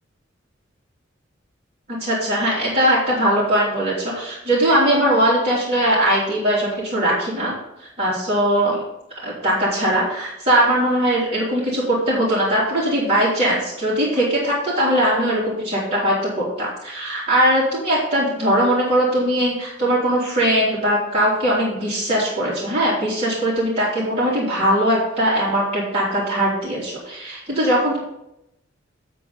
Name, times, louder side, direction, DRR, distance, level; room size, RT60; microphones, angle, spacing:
voice 1, 1.9-8.8 9.2-28.0, right 1 dB, 30° right, -8 dB, 3.2 m, -20 dB
8.4 x 7.8 x 4.2 m, 0.84 s
head